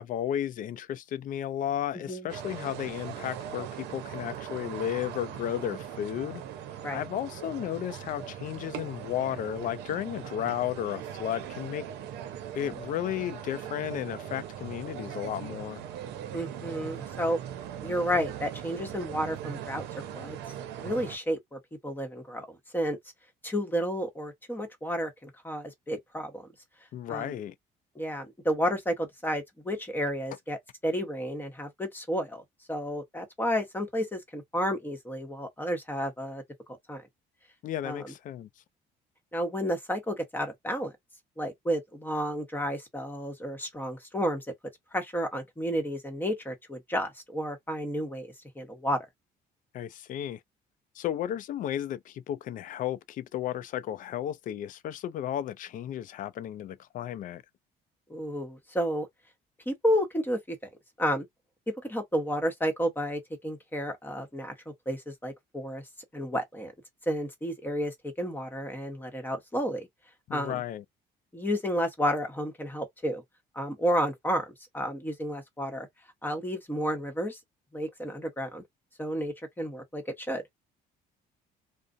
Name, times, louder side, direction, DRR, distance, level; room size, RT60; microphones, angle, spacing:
voice 1, 0.0-6.4 6.9-11.9 12.5-15.8 26.9-27.5 37.6-38.5 49.7-50.4 50.9-57.4 70.3-70.8, left 11 dB, 55° left, 0.4 m, -33 dB
sound 1, 2.3-21.2, right 10 dB, 85° right, 0.6 m, -40 dB
voice 2, 16.3-17.4 17.8-19.9 20.1-20.4 20.8-23.0 23.4-26.5 27.1-27.3 28.0-30.6 30.8-32.4 32.7-36.4 36.9-37.0 37.8-38.1 39.3-40.9 41.4-44.4 44.9-49.0 58.1-59.1 59.7-60.6 61.0-61.3 61.8-64.5 64.9-65.8 66.1-66.7 67.1-69.9 70.3-70.6 71.3-73.2 73.5-75.9 76.2-77.4 77.7-78.6 79.0-80.4, equal, 10° left, 1.0 m, -31 dB
2.4 x 2.0 x 2.5 m
cardioid pair, 110°, 17 cm